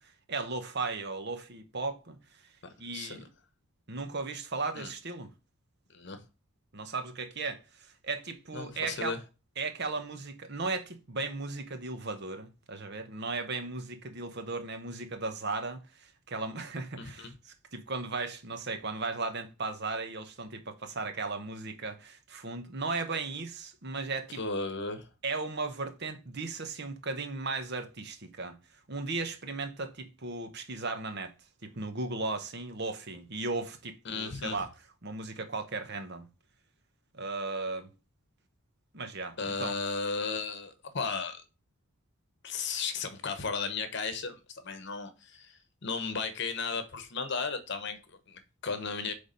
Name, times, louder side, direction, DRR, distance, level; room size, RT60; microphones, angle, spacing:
voice 1, 0.3-2.2 2.8-3.3 3.9-5.3 6.7-9.2 9.6-24.4 25.2-28.6 28.9-31.3 31.6-34.7 35.0-36.3 37.1-37.9 38.9-39.7, right 3 dB, 50° right, 0.9 m, -36 dB
voice 2, 2.9-3.2 4.7-4.9 5.9-6.2 8.5-9.2 17.0-17.3 24.4-25.1 34.0-34.6 39.4-41.4 42.4-49.1, left 4 dB, 50° left, 1.0 m, -35 dB
8.5 x 3.5 x 5.3 m
head